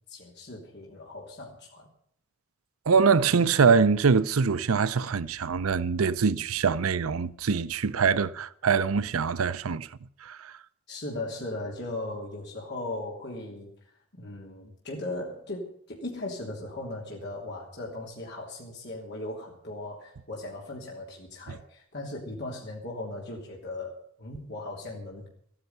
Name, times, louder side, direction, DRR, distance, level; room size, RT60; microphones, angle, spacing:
voice 1, 0.1-1.9 10.9-13.7 14.1-25.3, left 2 dB, 55° left, 3.0 m, -38 dB
voice 2, 2.9-9.9 10.2-10.5 21.5-21.6, right 5 dB, 85° right, 0.6 m, -24 dB
14.5 x 10.0 x 8.1 m
head